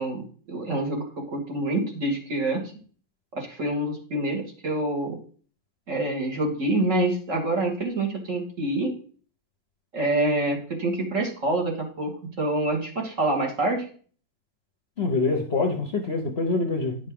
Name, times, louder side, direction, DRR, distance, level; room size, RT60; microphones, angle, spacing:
voice 1, 0.0-2.7 3.3-5.2 5.9-8.9 9.9-12.1 12.4-13.8, right 2 dB, 45° right, 0 dB, 2.1 m, -26 dB
voice 2, 15.0-17.0, left 3 dB, 45° left, 3 dB, 1.0 m, -25 dB
10.0 x 6.4 x 3.7 m, 0.43 s
omnidirectional pair, 2.0 m